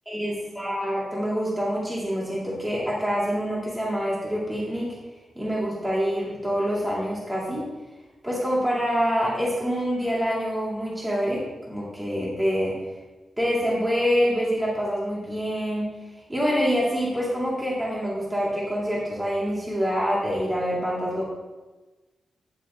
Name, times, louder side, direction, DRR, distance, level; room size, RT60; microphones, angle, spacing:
voice 1, 0.1-4.9 5.3-7.7 8.2-12.8 13.4-15.9 16.3-21.3, equal, 10° right, -6 dB, 3.3 m, -26 dB
10.5 x 6.8 x 3.9 m, 1.2 s
wide cardioid pair, 110°, 0 cm